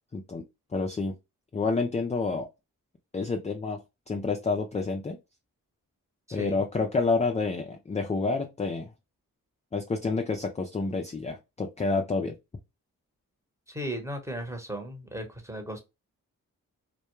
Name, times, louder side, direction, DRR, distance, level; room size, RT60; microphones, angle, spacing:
voice 1, 0.1-0.4 0.7-1.1 1.5-2.5 3.1-3.8 4.1-5.2 6.3-8.9 9.7-12.3, left 3 dB, 20° left, 0.4 m, -28 dB
voice 2, 6.3-6.6 13.7-15.8, right 1 dB, 10° right, 1.0 m, -36 dB
2.3 x 2.1 x 3.0 m
supercardioid pair, 45°, 37 cm